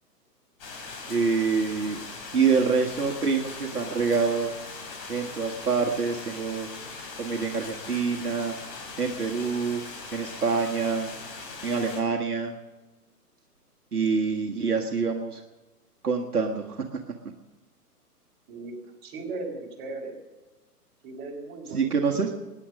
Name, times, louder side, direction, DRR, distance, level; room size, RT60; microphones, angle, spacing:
sound 1, 0.6-12.0, left 4 dB, 35° left, 3.8 m, -40 dB
voice 1, 1.1-2.0 2.3-4.5 5.1-6.7 7.2-8.6 9.0-9.8 10.1-11.1 11.6-12.5 13.9-15.4 16.0-16.8 21.7-22.3, right 5 dB, 65° right, 1 dB, 1.6 m, -26 dB
voice 2, 19.0-20.1 21.0-22.1, right 3 dB, 25° right, -1 dB, 3.9 m, -37 dB
20.5 x 9.9 x 6.3 m, 1.2 s
figure-of-eight pair, 125°, 48 cm